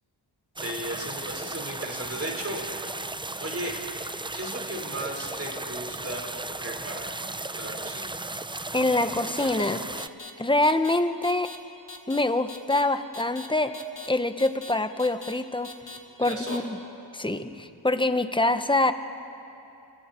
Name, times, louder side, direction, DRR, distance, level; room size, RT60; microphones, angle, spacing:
sound 1, 0.6-10.1, right 2 dB, 10° right, 0.4 m, -35 dB
voice 1, 0.6-3.0 3.4-3.7 4.3-6.3 6.6-7.1 7.5-8.2 16.2-16.6, right 1 dB, 35° right, 0 dB, 4.7 m, -35 dB
voice 2, 8.7-9.8 10.4-11.5 12.1-13.7 14.1-15.7 16.2-16.8 17.1-18.9, left 2 dB, 10° left, 9 dB, 1.0 m, -25 dB
sound 2, 9.4-9.7 10.0-10.3 10.6-11.0 11.2-11.6 11.9-12.2 12.5-12.8 13.1-13.5 13.7-14.1 14.4-14.7 15.0-15.3 15.6-16.0 16.2-16.6, left 4 dB, 60° left, 2.1 m, -41 dB
29.0 x 27.0 x 4.5 m, 2.8 s
wide cardioid pair, 85°, 43 cm